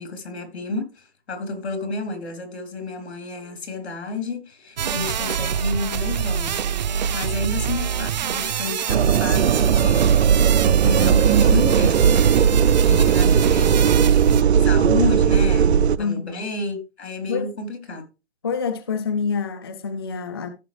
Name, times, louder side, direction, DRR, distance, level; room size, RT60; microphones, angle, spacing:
voice 1, 0.0-6.6 7.1-10.2 10.8-12.3 12.6-14.1 14.6-18.0, left 2 dB, 80° left, 3.5 m, -30 dB
sound 1, 4.8-14.4, right 8 dB, 40° right, 0.5 m, -25 dB
sound 2, 8.9-16.0, right 7 dB, 75° right, 0.8 m, -17 dB
voice 2, 16.0-16.4 17.3-17.5 18.4-20.5, left 5 dB, 25° left, 0.4 m, -27 dB
15.0 x 5.9 x 3.2 m
hypercardioid pair, 165°, 33 cm